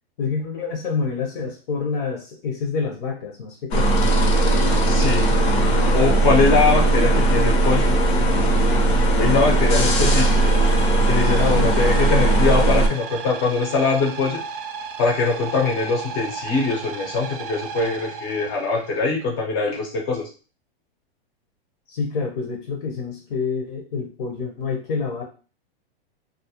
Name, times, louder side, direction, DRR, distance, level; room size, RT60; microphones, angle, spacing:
voice 1, 0.2-3.9 11.2-11.7 21.9-25.2, left 5 dB, 60° left, 2 dB, 0.6 m, -28 dB
sound 1, 3.7-12.9, right 2 dB, 85° left, 0.9 m, -18 dB
voice 2, 4.9-5.3 5.8-7.9 9.2-10.4 11.0-14.4 15.0-20.3, left 4 dB, 20° left, 0 dB, 0.4 m, -22 dB
sound 2, 8.3-19.1, right 6 dB, 65° right, 0.5 m, -35 dB
2.3 x 2.0 x 2.7 m, 0.36 s
supercardioid pair, 160°, 30 cm